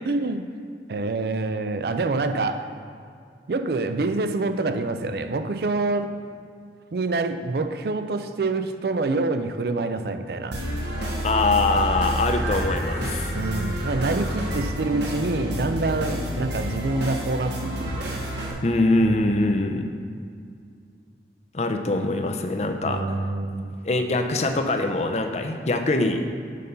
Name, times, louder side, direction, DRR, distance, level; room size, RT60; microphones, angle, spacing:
voice 1, 0.1-0.5 0.9-2.7 3.5-6.1 6.9-10.6 13.3-18.2 22.8-23.7, right 3 dB, 60° right, 9 dB, 0.4 m, -26 dB
sound 1, 10.5-18.5, equal, 75° right, 1.4 m, -29 dB
voice 2, 11.2-13.4 18.6-19.8 21.5-23.0 23.8-26.2, left 2 dB, 35° left, 5 dB, 0.5 m, -23 dB
6.6 x 5.3 x 5.4 m, 2.3 s
head